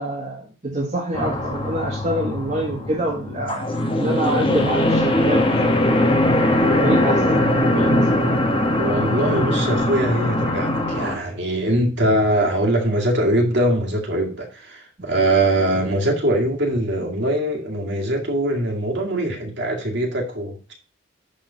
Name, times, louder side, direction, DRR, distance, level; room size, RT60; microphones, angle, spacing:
voice 1, 0.0-3.6 4.0-5.4 6.8-8.3, right 1 dB, 35° right, -2 dB, 1.6 m, -26 dB
sound 1, 1.1-11.2, left 1 dB, 25° left, 1.2 m, -20 dB
voice 2, 8.7-20.7, right 1 dB, 55° right, 0 dB, 2.1 m, -22 dB
10.5 x 3.8 x 5.6 m, 0.36 s
head